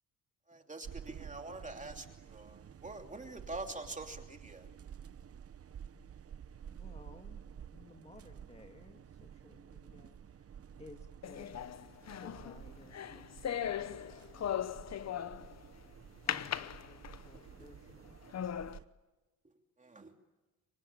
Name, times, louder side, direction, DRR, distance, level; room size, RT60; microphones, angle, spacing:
voice 1, 0.5-4.7 19.8-20.1, right 2 dB, 20° right, 4 dB, 2.8 m, -45 dB
sound 1, 0.8-18.9, right 8 dB, 40° right, 0.9 m, -52 dB
voice 2, 6.7-10.5 10.8-11.6 12.1-14.7 16.3-18.2, left 2 dB, 15° left, 5 dB, 2.0 m, -58 dB
sound 2, 11.2-15.6 16.3-17.4 17.9-18.0 18.3-18.8, left 9 dB, 45° left, 1.0 m, -38 dB
27.0 x 24.0 x 8.9 m, 1.1 s
cardioid pair, 115°, 36 cm